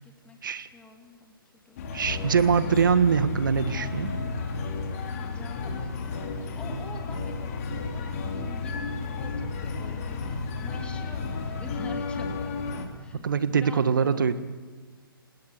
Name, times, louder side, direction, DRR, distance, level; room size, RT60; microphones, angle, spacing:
voice 1, 0.0-1.3 1.6-2.3 5.0-12.6 12.9-14.4, left 3 dB, 10° left, 4 dB, 2.5 m, -47 dB
sound 1, 1.8-12.8, left 4 dB, 40° left, 3.4 m, -32 dB
voice 2, 1.9-4.2 13.2-14.4, right 6 dB, 60° right, 13 dB, 1.6 m, -23 dB
28.5 x 18.5 x 8.4 m, 1.4 s
figure-of-eight pair, 130°, 12 cm